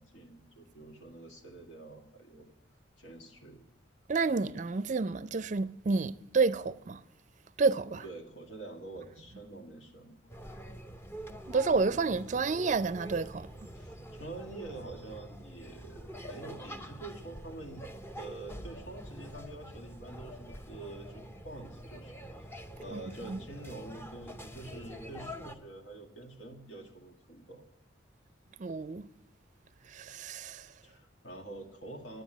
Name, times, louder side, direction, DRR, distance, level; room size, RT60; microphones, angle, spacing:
voice 1, 0.0-2.5 3.0-3.7 8.0-10.2 13.7-17.8 18.1-27.6 30.8-32.2, right 2 dB, 75° left, 1.9 m, -47 dB
voice 2, 4.1-7.0 7.6-8.0 11.5-13.5 22.9-23.0 23.3-23.4 28.6-29.0 29.9-30.7, right 4 dB, 40° right, 0.4 m, -29 dB
sound 1, 10.3-25.6, equal, 10° left, 0.7 m, -46 dB
10.0 x 9.4 x 9.0 m
head